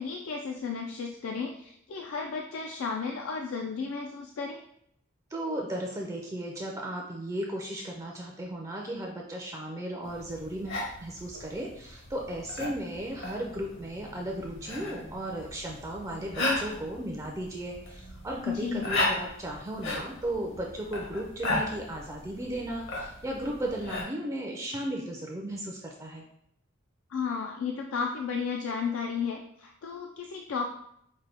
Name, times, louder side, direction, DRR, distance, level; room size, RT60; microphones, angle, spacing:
voice 1, 0.0-4.6 18.5-18.9 27.1-30.7, left 5 dB, 80° left, 2 dB, 0.4 m, -33 dB
voice 2, 5.3-26.2, right 1 dB, 15° right, 0 dB, 0.4 m, -35 dB
sound 1, 10.0-24.0, left 2 dB, 60° left, 0.9 m, -36 dB
5.0 x 2.1 x 3.3 m, 0.73 s
head